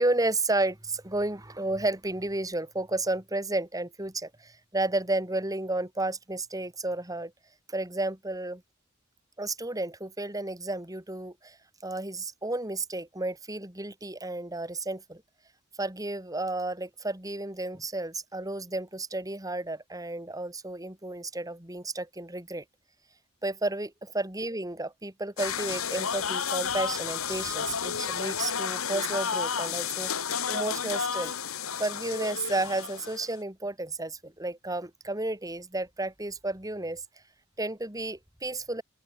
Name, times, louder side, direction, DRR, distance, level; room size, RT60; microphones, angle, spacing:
voice 1, 0.0-7.3 7.7-8.6 9.4-11.6 11.8-15.2 15.8-22.6 23.4-31.3 31.8-37.0 37.6-38.8, right 2 dB, 15° right, 3.1 m, -32 dB
sound 1, 25.4-33.3, left 7 dB, 80° left, 2.1 m, -31 dB
open air
head